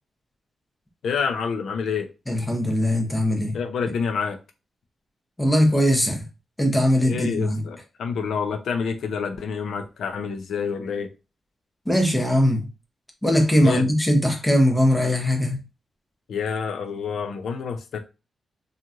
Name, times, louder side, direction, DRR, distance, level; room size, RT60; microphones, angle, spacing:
voice 1, 1.0-2.1 3.5-4.4 7.0-11.1 13.6-13.9 16.3-18.0, left 6 dB, 85° left, 0.5 m, -28 dB
voice 2, 2.3-3.5 5.4-6.2 6.6-7.6 11.9-12.6 13.2-15.6, equal, 10° left, 0.6 m, -20 dB
3.0 x 2.4 x 2.4 m
wide cardioid pair, 120°, 0 cm